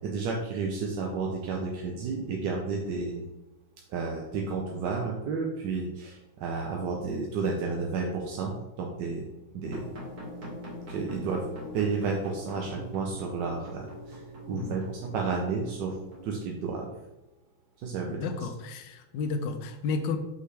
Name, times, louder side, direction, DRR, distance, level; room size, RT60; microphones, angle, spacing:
voice 1, 0.0-3.2 3.9-9.3 9.5-9.9 10.9-11.4 11.7-14.2 14.5-16.0 16.2-16.9 17.8-18.2, right 4 dB, 70° right, 1 dB, 1.1 m, -31 dB
sound 1, 9.6-16.4, equal, 45° right, 2.5 m, -43 dB
voice 2, 18.1-20.2, left 4 dB, 70° left, 7 dB, 1.2 m, -32 dB
5.9 x 5.4 x 3.2 m, 1.0 s
omnidirectional pair, 2.4 m